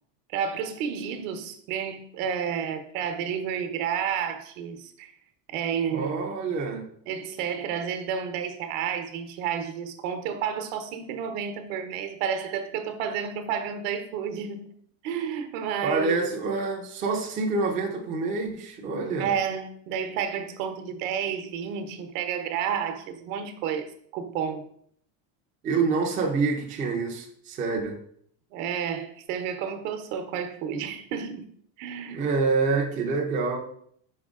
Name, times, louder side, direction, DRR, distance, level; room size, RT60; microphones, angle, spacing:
voice 1, 0.3-5.1 5.5-6.3 7.1-14.7 15.0-16.3 19.2-23.9 24.1-24.6 28.5-31.4 31.8-32.2, right 7 dB, 60° right, 1.0 m, -31 dB
voice 2, 5.9-6.9 15.8-19.3 25.6-28.0 32.1-33.6, right 4 dB, 15° right, 0.5 m, -27 dB
5.5 x 5.2 x 3.6 m
cardioid pair, 180°, 45 cm